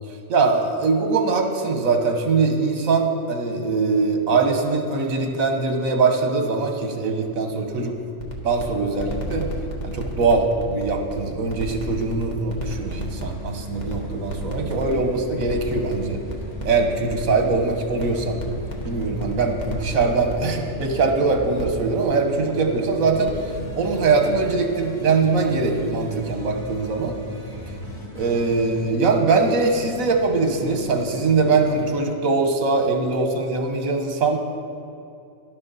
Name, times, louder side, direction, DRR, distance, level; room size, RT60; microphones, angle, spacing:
voice 1, 0.3-8.0 8.4-9.5 9.8-16.2 16.6-18.4 18.8-23.3 23.7-27.1 28.1-34.4, right 4 dB, 75° right, 4 dB, 1.5 m, -22 dB
sound 1, 7.5-20.8 21.3-21.6 21.9-22.0 22.4-22.5 23.0-23.6 23.8-23.9, right 1 dB, 35° left, 1.4 m, -33 dB
sound 2, 12.8-32.1, left 1 dB, 15° left, 1.3 m, -40 dB
sound 3, 18.2-19.3 19.8-22.2 22.4-28.8, right 2 dB, 35° right, 2.0 m, -40 dB
12.0 x 11.5 x 4.1 m, 2.5 s
omnidirectional pair, 1.4 m